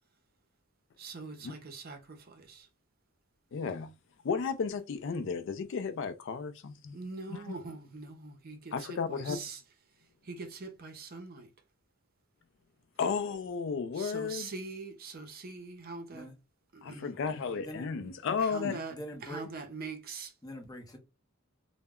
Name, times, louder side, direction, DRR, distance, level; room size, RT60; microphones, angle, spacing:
voice 1, 1.0-2.7 6.9-9.6 10.2-11.5 13.9-16.3 16.7-17.1 18.4-20.3, right 4 dB, 45° right, 0.6 m, -43 dB
voice 2, 3.5-3.9 4.2-7.0 7.3-7.6 8.7-9.4 13.0-14.5 16.8-18.8, left 5 dB, 65° left, 0.4 m, -33 dB
voice 3, 17.6-18.1 18.9-19.4 20.4-21.0, equal, 20° left, 0.7 m, -44 dB
2.1 x 2.1 x 3.5 m
head